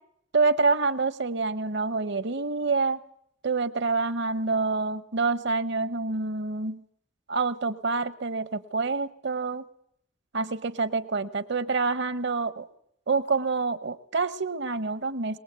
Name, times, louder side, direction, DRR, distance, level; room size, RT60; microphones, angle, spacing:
voice 1, 0.3-3.0 3.4-6.8 7.3-9.6 10.3-12.6 13.1-15.4, right 4 dB, 60° right, 16 dB, 1.0 m, -27 dB
22.5 x 20.0 x 8.1 m, 0.72 s
head